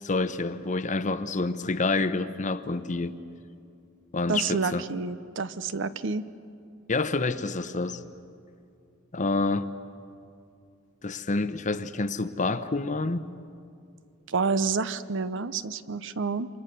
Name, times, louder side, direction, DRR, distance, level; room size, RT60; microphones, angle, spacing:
voice 1, 0.0-3.1 4.1-4.8 6.9-8.0 9.1-9.7 11.0-13.2, left 3 dB, 35° left, 0.9 m, -28 dB
voice 2, 4.3-6.2 14.3-16.5, right 4 dB, 60° right, 0.8 m, -29 dB
28.0 x 25.5 x 6.8 m
head